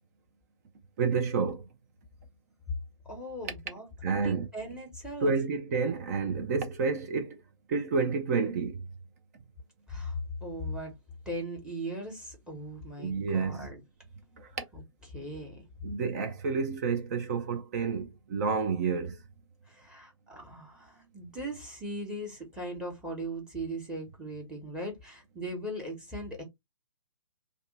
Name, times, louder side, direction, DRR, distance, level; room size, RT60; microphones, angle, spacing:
voice 1, 1.0-1.7 4.0-4.5 5.2-7.4 7.7-8.8 13.0-13.7 14.4-14.6 15.8-19.2, right 5 dB, 30° right, 0.5 m, -29 dB
voice 2, 3.0-5.3 9.9-10.9 11.2-13.8 14.7-14.8 15.1-15.6 19.7-26.4, equal, 5° right, 1.0 m, -39 dB
2.6 x 2.3 x 3.8 m
figure-of-eight pair, 130°, 16 cm